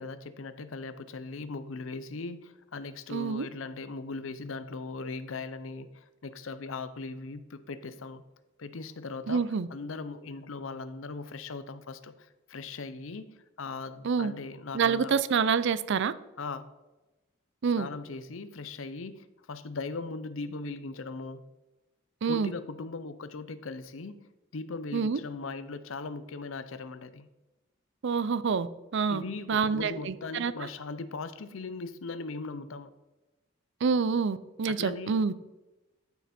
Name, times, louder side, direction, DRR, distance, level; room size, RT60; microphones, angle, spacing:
voice 1, 0.0-8.2 8.6-9.4 9.7-15.1 16.4-16.7 17.8-21.4 22.3-27.3 29.1-32.9 34.7-35.2, left 3 dB, 75° left, 0.7 m, -39 dB
voice 2, 3.1-3.5 9.3-9.7 14.0-14.3 14.7-16.1 17.6-17.9 22.2-22.5 24.9-25.2 28.0-28.7 28.9-29.2 29.5-30.7 33.8-35.3, right 5 dB, 60° right, 0.5 m, -27 dB
12.5 x 5.9 x 4.3 m
head